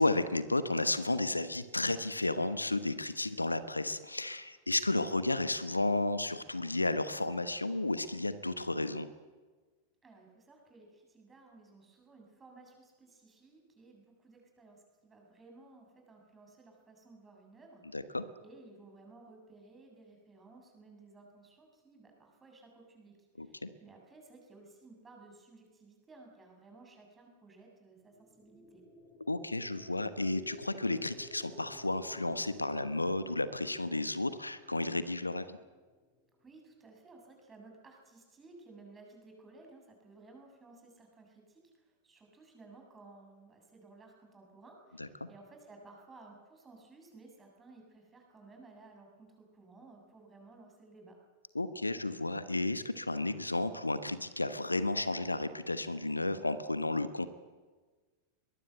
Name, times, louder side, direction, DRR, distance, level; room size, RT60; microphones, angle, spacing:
voice 1, 0.0-9.1 17.9-18.2 23.4-23.7 29.3-35.6 45.0-45.3 51.5-57.3, left 2 dB, 85° left, 13 dB, 1.1 m, -32 dB
voice 2, 10.0-17.8 18.4-28.8 36.4-51.1, right 3 dB, 15° right, 2 dB, 7.4 m, -57 dB
sound 1, 28.1-36.2, equal, 25° left, 7.3 m, -55 dB
22.5 x 20.5 x 8.0 m, 1.4 s
figure-of-eight pair, 90°, 0 cm